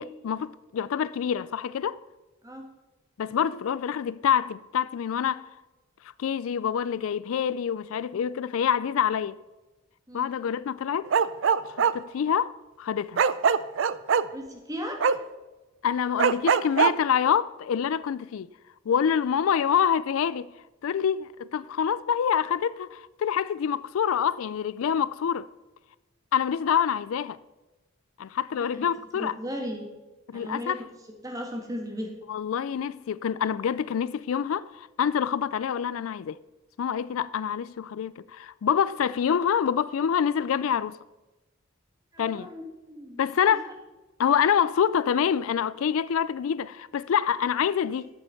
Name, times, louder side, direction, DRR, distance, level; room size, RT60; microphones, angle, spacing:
voice 1, 0.0-2.0 3.2-5.5 6.2-9.3 10.1-11.1 11.8-13.2 15.8-18.5 18.9-20.5 20.8-25.5 26.3-27.4 28.2-29.3 30.3-30.8 32.3-36.4 36.8-41.0 42.2-42.5 43.2-43.7 44.2-48.1, left 8 dB, 75° left, 0.3 m, -26 dB
Bark, 11.1-11.9 13.2-14.2 15.0-15.1 16.2-16.9, right 6 dB, 60° right, 0.4 m, -21 dB
voice 2, 14.3-15.0 28.5-28.9 29.1-29.8 30.3-30.8 31.2-32.1 42.1-43.7, equal, 15° right, 1.7 m, -36 dB
12.5 x 7.7 x 5.8 m
head